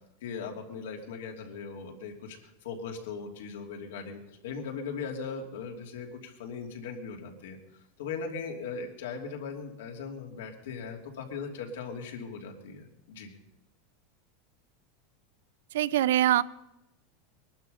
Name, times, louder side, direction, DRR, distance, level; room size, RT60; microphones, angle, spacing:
voice 1, 0.2-7.6 8.0-13.4, left 5 dB, 85° left, 2 dB, 2.9 m, -39 dB
voice 2, 15.7-16.4, right 12 dB, 80° right, 18 dB, 0.5 m, -23 dB
21.5 x 12.0 x 5.5 m, 0.93 s
supercardioid pair, 165°, 0 cm